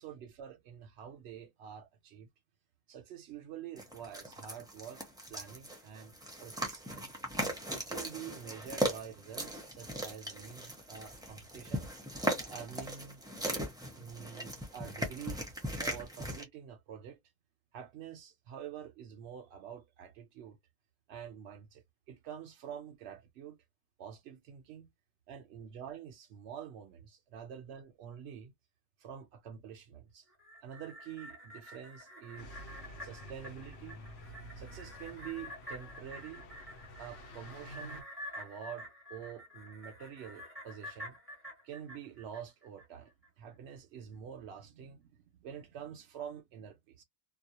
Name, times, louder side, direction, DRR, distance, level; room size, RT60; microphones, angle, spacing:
voice 1, 0.0-2.3 2.9-6.2 6.4-11.9 12.5-13.2 13.9-15.5 15.8-17.2 17.7-20.6 21.1-21.8 22.1-23.6 24.0-24.9 25.3-28.5 29.0-30.3 30.6-32.5 33.0-34.0 34.6-36.5 37.0-38.1 38.3-41.2 41.6-47.0, right 8 dB, 85° right, 0.8 m, -47 dB
sound 1, 3.8-16.4, right 1 dB, 5° right, 0.5 m, -38 dB
sound 2, 30.3-42.9 43.2-43.3, equal, 15° left, 1.0 m, -49 dB
sound 3, 32.4-38.0, equal, 90° left, 0.9 m, -50 dB
2.3 x 2.0 x 2.7 m
omnidirectional pair, 1.1 m